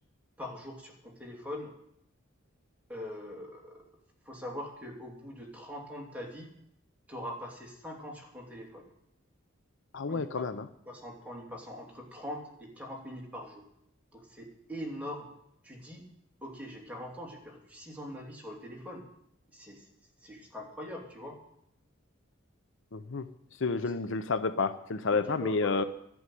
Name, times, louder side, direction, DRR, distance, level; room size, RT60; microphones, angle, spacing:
voice 1, 0.4-1.7 2.9-3.8 4.2-6.5 7.1-8.9 10.1-10.5 10.9-13.7 14.1-15.3 15.6-16.1 16.4-19.0 19.5-19.9 20.2-21.4 23.7-24.0 25.3-25.9, left 1 dB, 5° right, -2 dB, 3.0 m, -42 dB
voice 2, 9.9-10.7 22.9-23.3 23.6-25.8, left 4 dB, 65° left, 12 dB, 0.7 m, -30 dB
11.5 x 8.1 x 9.1 m, 0.73 s
head